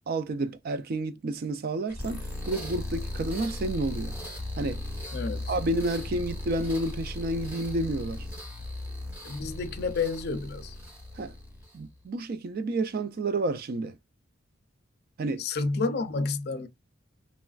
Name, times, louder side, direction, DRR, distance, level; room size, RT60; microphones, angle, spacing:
voice 1, 0.1-4.1 4.6-4.8 5.5-8.3 11.2-11.3 11.7-14.0 15.2-15.4, right 2 dB, 45° right, 0.3 m, -30 dB
sound 1, 1.9-11.9, left 1 dB, 10° right, 1.2 m, -37 dB
voice 2, 5.1-5.5 9.2-10.7 15.4-16.7, left 4 dB, 50° left, 0.4 m, -30 dB
3.0 x 2.3 x 2.3 m
head